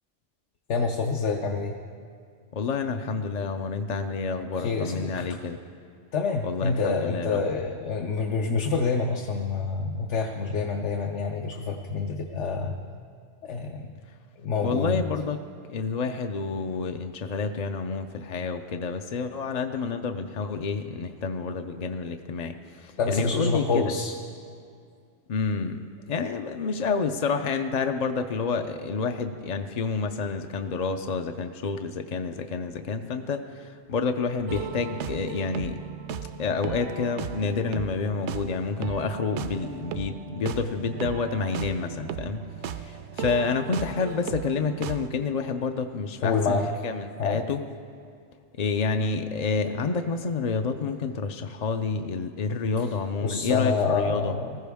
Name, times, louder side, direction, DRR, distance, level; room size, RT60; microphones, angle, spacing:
voice 1, 0.7-1.7 4.5-5.4 6.1-12.7 13.4-13.9 14.4-15.0 23.0-24.1 46.2-46.7 47.2-47.4 52.8-52.9 53.2-54.6, left 4 dB, 75° left, 2 dB, 1.1 m, -27 dB
voice 2, 2.5-5.6 6.4-7.4 14.6-15.4 15.7-23.9 25.3-25.8 26.1-35.8 36.4-47.6 48.6-54.3, left 4 dB, 50° left, 6 dB, 0.5 m, -29 dB
sound 1, 34.5-45.1, right 8 dB, 75° right, 0.9 m, -36 dB
20.0 x 14.0 x 3.5 m, 2.3 s
omnidirectional pair, 1.2 m